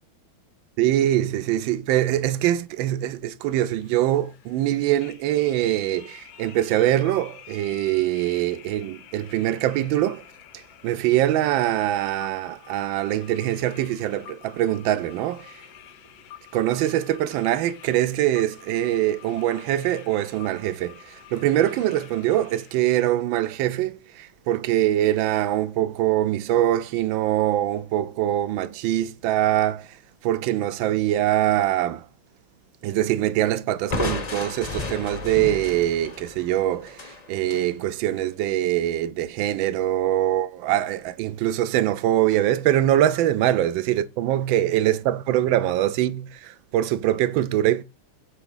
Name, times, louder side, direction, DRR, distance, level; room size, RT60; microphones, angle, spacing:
voice 1, 0.8-10.2 10.5-15.6 16.5-30.0 30.2-32.1 32.8-47.8, right 13 dB, 75° right, 1.3 m, -23 dB
sound 1, 3.4-23.2, left 11 dB, 75° left, 1.6 m, -48 dB
Crushing, 33.9-37.7, left 3 dB, 40° left, 0.5 m, -32 dB
9.0 x 3.5 x 5.5 m
omnidirectional pair, 2.3 m